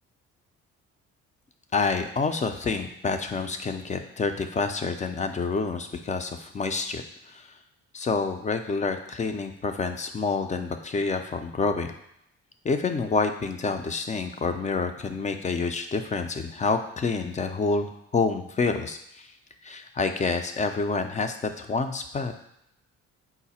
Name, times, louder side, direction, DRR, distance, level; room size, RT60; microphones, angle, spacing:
voice 1, 1.7-7.5 7.9-11.9 12.6-19.3 19.6-22.3, left 4 dB, 25° left, 6 dB, 0.4 m, -28 dB
4.8 x 2.1 x 4.1 m, 0.77 s
cardioid pair, 90°, 30 cm